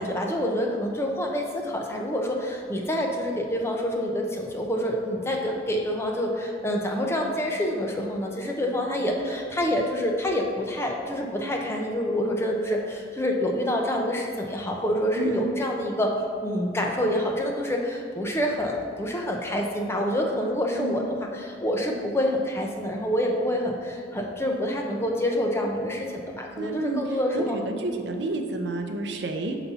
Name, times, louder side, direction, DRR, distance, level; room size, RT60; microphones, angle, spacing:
voice 1, 0.0-16.1 16.4-28.0, equal, 15° left, 0 dB, 0.5 m, -27 dB
voice 2, 15.2-15.5 20.7-21.0 26.6-29.6, right 2 dB, 60° right, 4 dB, 0.6 m, -30 dB
5.8 x 4.0 x 5.5 m, 2.2 s
head